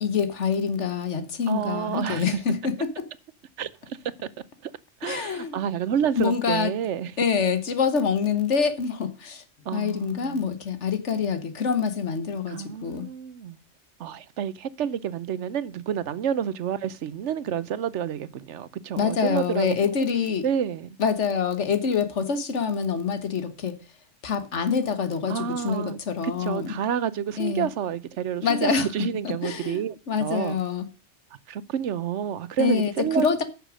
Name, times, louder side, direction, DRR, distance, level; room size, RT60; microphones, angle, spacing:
voice 1, 0.0-3.0 5.0-5.6 6.2-6.7 7.2-9.4 9.7-13.1 19.0-20.5 21.0-23.8 24.2-26.7 27.4-27.7 28.4-28.9 29.2-30.9 32.6-33.4, left 6 dB, 90° left, 1.6 m, -26 dB
voice 2, 1.5-2.2 3.6-4.0 4.6-4.7 5.0-7.1 9.6-10.4 12.5-13.6 14.0-19.8 20.4-21.0 25.3-26.0 26.2-30.6 31.5-33.2, right 9 dB, 85° right, 1.1 m, -29 dB
10.0 x 6.5 x 6.3 m
omnidirectional pair, 1.2 m